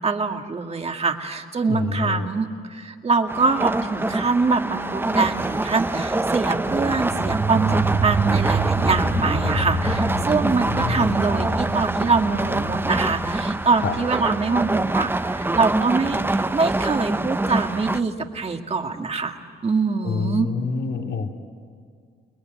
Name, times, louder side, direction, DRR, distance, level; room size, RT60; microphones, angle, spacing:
voice 1, 0.0-20.5, right 4 dB, 30° right, 4 dB, 2.2 m, -24 dB
voice 2, 1.7-2.3 10.7-11.2 13.8-13.9 20.0-21.4, left 5 dB, 65° left, 3 dB, 2.4 m, -27 dB
sound 1, 3.3-18.0, right 2 dB, 10° right, 0.7 m, -25 dB
sound 2, 6.7-17.8, right 3 dB, 65° right, 4.5 m, -28 dB
29.5 x 20.5 x 9.3 m, 2.1 s
cardioid pair, 90°, 20 cm